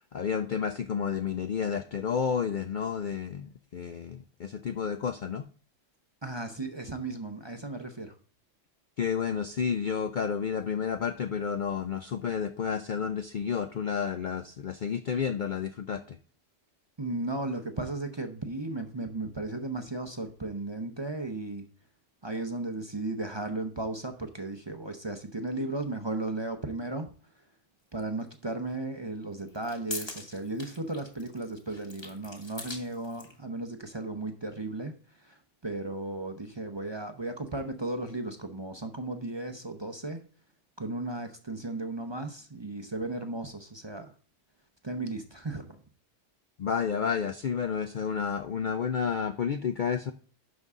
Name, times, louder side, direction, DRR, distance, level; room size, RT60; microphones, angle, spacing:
voice 1, 0.0-5.5 9.0-16.2 46.6-50.1, left 7 dB, 60° left, 7 dB, 0.5 m, -31 dB
voice 2, 6.2-8.2 17.0-21.7 22.2-27.1 27.9-40.3 40.8-44.1 44.8-45.8, right 2 dB, 25° right, 6 dB, 0.7 m, -35 dB
sound 1, 28.0-28.1 29.4-33.4, left 1 dB, 20° left, 1.5 m, -43 dB
11.0 x 5.4 x 3.6 m, 0.40 s
omnidirectional pair, 1.3 m